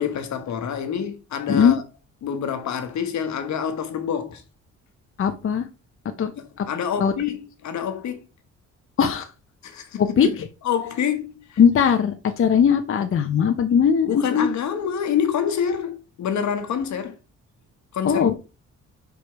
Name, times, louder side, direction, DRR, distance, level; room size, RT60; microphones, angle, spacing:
voice 1, 0.0-1.8 2.2-4.4 6.3-8.3 9.6-10.4 10.6-11.6 14.1-17.2 17.9-18.3, left 8 dB, 65° left, 1.2 m, -27 dB
voice 2, 5.2-5.6 6.2-6.3 6.6-6.7 7.0-7.1 9.0-9.3 10.0-10.3 11.6-14.5 18.0-18.3, left 7 dB, 45° left, 0.8 m, -19 dB
5.1 x 4.9 x 4.6 m
cardioid pair, 90°, 30 cm